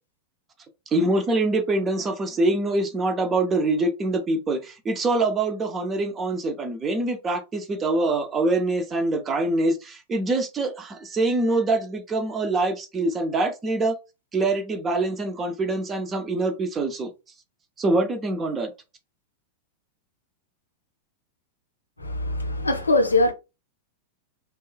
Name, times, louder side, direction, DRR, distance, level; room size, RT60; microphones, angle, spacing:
voice 1, 0.9-13.9 14.3-17.1 17.8-18.7, right 2 dB, 20° right, 0.5 m, -24 dB
voice 2, 22.0-23.3, left 2 dB, 80° left, 0.5 m, -22 dB
3.0 x 2.2 x 2.2 m
figure-of-eight pair, 90°, 0 cm